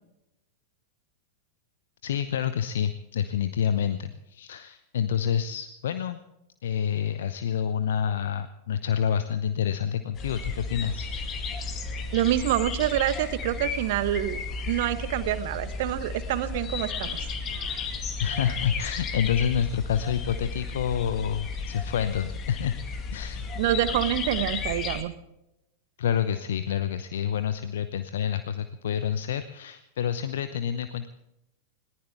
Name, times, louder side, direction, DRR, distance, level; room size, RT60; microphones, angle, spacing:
voice 1, 2.0-6.2 6.6-11.1 18.2-22.8 23.1-23.5 26.0-31.1, left 8 dB, 60° left, 12 dB, 0.8 m, -28 dB
sound 1, 10.1-25.0, left 4 dB, 30° left, 2.2 m, -33 dB
voice 2, 12.1-14.4 14.7-17.3 23.6-25.1, right 13 dB, 50° right, 14 dB, 1.1 m, -26 dB
21.0 x 19.0 x 3.5 m, 0.89 s
figure-of-eight pair, 90°, 0 cm